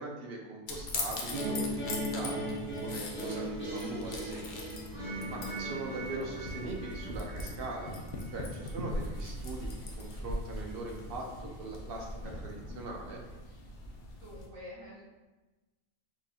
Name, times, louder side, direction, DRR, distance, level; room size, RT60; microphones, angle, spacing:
voice 1, 0.0-2.6 2.8-4.5 5.3-7.9 8.3-13.2, right 2 dB, 60° right, -1 dB, 0.7 m, -41 dB
sound 1, 0.7-14.5, left 1 dB, 55° left, 0.5 m, -41 dB
sound 2, 1.3-8.4, right 1 dB, 10° left, 0.8 m, -38 dB
voice 2, 14.1-15.0, left 1 dB, 75° right, -5 dB, 1.6 m, -47 dB
4.2 x 2.5 x 3.5 m, 1.2 s
omnidirectional pair, 1.4 m